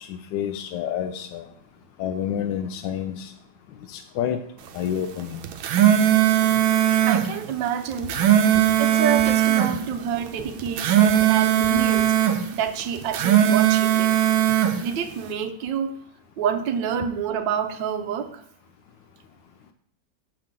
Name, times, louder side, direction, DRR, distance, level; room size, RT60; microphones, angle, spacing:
voice 1, 0.0-1.5 2.0-3.3 3.9-4.4 4.7-5.5, left 9 dB, 75° left, 6 dB, 1.1 m, -29 dB
sound 1, 5.4-7.3 7.9-9.7 10.6-12.4 13.0-14.8, right 11 dB, 90° right, 1.5 m, -19 dB
voice 2, 7.0-8.1 8.8-12.1 12.5-14.1 14.8-15.9 16.4-18.4, right 8 dB, 70° right, 7 dB, 1.4 m, -28 dB
7.6 x 6.7 x 3.7 m, 0.64 s
omnidirectional pair, 2.2 m